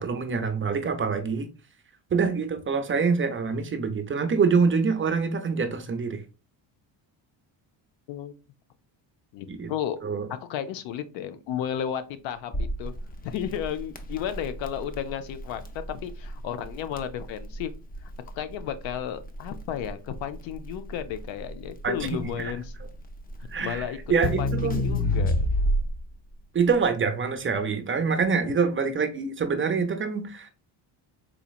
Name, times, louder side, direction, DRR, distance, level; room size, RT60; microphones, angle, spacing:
voice 1, 0.0-1.5 2.1-6.2 9.5-9.7 10.0-10.3 21.8-22.5 23.5-24.8 26.5-30.5, right 5 dB, 25° right, 0.5 m, -25 dB
voice 2, 9.3-10.0 10.3-12.9 13.2-17.7 18.0-18.1 18.4-22.7 23.6-24.0 24.4-25.5 28.4-28.5, left 9 dB, 75° left, 0.6 m, -33 dB
Crackle, 12.5-26.1, left 1 dB, 20° left, 0.4 m, -30 dB
4.1 x 2.9 x 2.3 m
cardioid pair, 110°, 45 cm